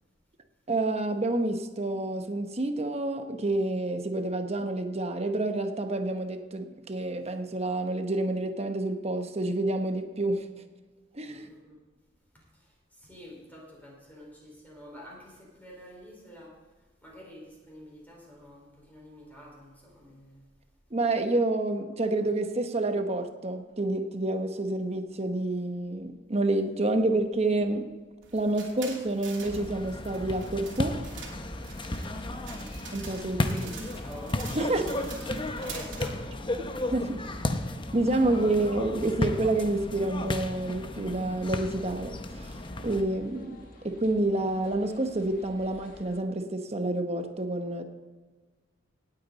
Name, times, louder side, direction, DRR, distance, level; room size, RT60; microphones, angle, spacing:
voice 1, 0.7-10.5 11.1-11.5 20.9-27.9 28.3-31.0 32.9-33.6 34.5-34.9 36.9-37.2 37.9-42.6 42.8-47.8, right 2 dB, 35° right, 1.1 m, -28 dB
voice 2, 11.3-11.8 13.0-16.5 17.0-20.4 26.9-27.0 32.2-32.7 33.4-34.4 35.0-36.2 38.1-38.6, equal, 10° left, 4.6 m, -48 dB
sound 1, 28.2-36.1, right 5 dB, 80° right, 2.9 m, -46 dB
sound 2, 29.4-43.0, left 1 dB, 25° left, 0.8 m, -34 dB
sound 3, 30.7-46.2, left 1 dB, 50° left, 1.6 m, -51 dB
18.0 x 8.7 x 4.1 m
head